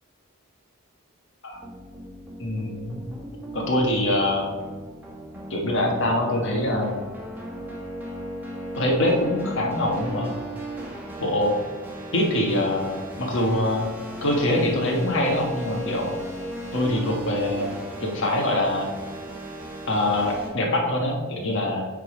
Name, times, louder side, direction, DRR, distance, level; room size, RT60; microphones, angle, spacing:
sound 1, 1.5-20.5, right 1 dB, 10° right, 1.5 m, -36 dB
voice 1, 2.4-3.0 3.5-4.5 5.5-7.0 8.8-10.4 11.2-11.6 12.1-13.9 14.2-16.1 16.7-17.7 18.0-18.9 19.9-21.9, left 1 dB, 55° left, 1 dB, 1.5 m, -24 dB
9.3 x 3.9 x 5.1 m, 1.4 s
head